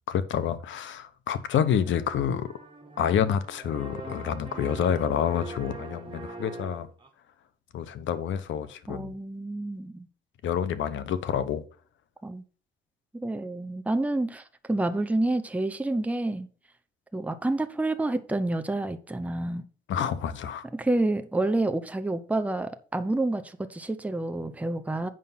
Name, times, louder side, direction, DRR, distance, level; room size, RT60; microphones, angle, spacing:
voice 1, 0.1-2.5 3.0-6.9 7.7-9.1 10.4-11.6 19.9-20.6, left 8 dB, 70° left, 1.0 m, -28 dB
sound 1, 1.5-7.1, right 2 dB, 25° right, 1.8 m, -42 dB
voice 2, 8.9-10.1 12.2-12.4 13.1-16.5 17.1-19.6 20.7-25.1, right 2 dB, 5° right, 0.7 m, -28 dB
7.7 x 5.4 x 5.6 m
cardioid pair, 90°, 20 cm